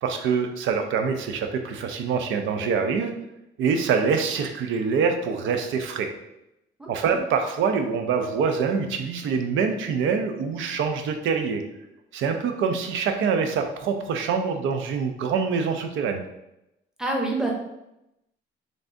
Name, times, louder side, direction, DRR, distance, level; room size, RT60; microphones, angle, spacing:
voice 1, 0.0-3.2 3.6-6.1 6.9-11.6 12.1-16.2, right 5 dB, 75° right, 6 dB, 0.5 m, -25 dB
voice 2, 6.8-7.2 17.0-17.5, right 2 dB, 5° right, -1 dB, 0.7 m, -27 dB
3.3 x 2.6 x 2.5 m, 0.87 s
cardioid pair, 90°, 20 cm